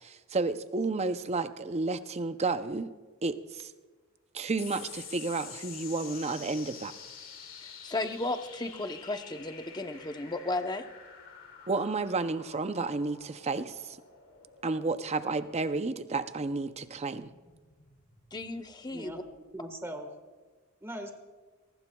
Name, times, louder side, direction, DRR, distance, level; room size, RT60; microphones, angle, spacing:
voice 1, 0.0-2.9 3.2-3.7 4.3-6.9 11.7-14.0 14.6-17.3, right 3 dB, 30° right, 11 dB, 0.5 m, -31 dB
sound 1, 4.6-19.4, left 7 dB, 65° left, 2.6 m, -49 dB
voice 2, 7.6-10.8 18.3-19.2, left 2 dB, 20° left, 7 dB, 0.7 m, -34 dB
voice 3, 18.9-20.1 20.8-21.1, equal, 10° right, 5 dB, 1.4 m, -40 dB
23.5 x 19.5 x 2.3 m, 1.4 s
head